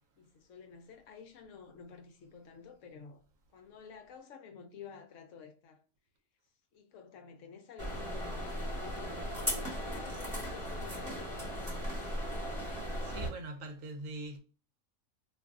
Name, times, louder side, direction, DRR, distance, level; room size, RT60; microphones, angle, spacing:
voice 1, 0.2-3.2 3.5-5.8 6.7-11.8, left 5 dB, 70° left, 0.9 m, -51 dB
sound 1, 7.8-13.3, equal, 25° right, 1.2 m, -37 dB
voice 2, 12.6-14.4, right 2 dB, 75° right, 1.0 m, -44 dB
2.6 x 2.4 x 3.5 m
omnidirectional pair, 1.4 m